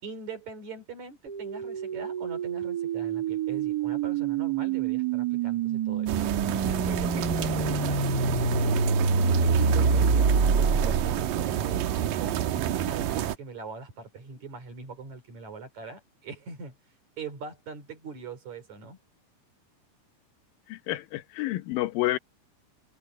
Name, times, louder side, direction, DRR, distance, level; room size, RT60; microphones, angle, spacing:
voice 1, 0.0-6.1 6.6-8.8 9.2-16.8 17.2-19.0, right 4 dB, 55° right, 5.5 m, -42 dB
sound 1, 1.3-11.3, right 4 dB, 35° right, 1.8 m, -26 dB
sound 2, 6.1-13.4, right 11 dB, 80° right, 2.7 m, -29 dB
voice 2, 20.7-22.2, left 17 dB, 90° left, 2.7 m, -29 dB
omnidirectional pair, 4.0 m